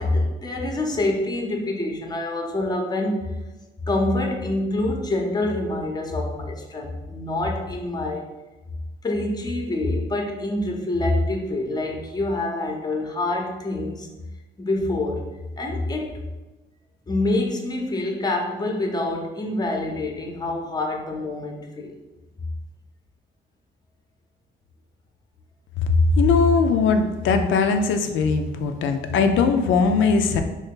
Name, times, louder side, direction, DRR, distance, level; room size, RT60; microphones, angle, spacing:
voice 1, 0.0-3.3 3.8-8.3 9.0-14.1 14.6-15.3 15.6-16.2 17.1-21.9, left 2 dB, 20° left, 2 dB, 0.7 m, -26 dB
voice 2, 26.2-30.4, left 4 dB, 75° left, 6 dB, 0.5 m, -20 dB
3.1 x 2.7 x 3.6 m, 1.1 s
cardioid pair, 90°, 20 cm